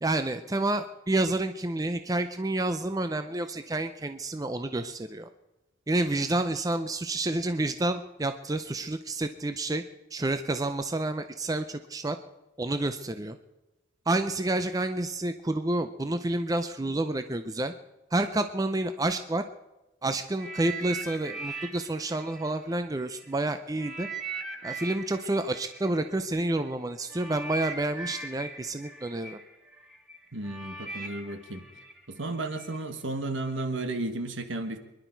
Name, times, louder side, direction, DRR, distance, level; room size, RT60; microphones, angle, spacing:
voice 1, 0.0-5.3 5.9-9.8 10.1-12.2 12.6-13.4 14.1-17.7 18.1-19.5 20.0-24.1 24.6-29.4, right 2 dB, 20° right, 9 dB, 0.5 m, -29 dB
sound 1, 20.4-23.3 23.8-32.8 33.5-33.6, right 3 dB, ahead, 1.7 m, -40 dB
voice 2, 30.3-31.6 32.1-34.8, right 2 dB, 70° right, 8 dB, 1.4 m, -33 dB
24.5 x 11.0 x 4.6 m, 1.0 s
head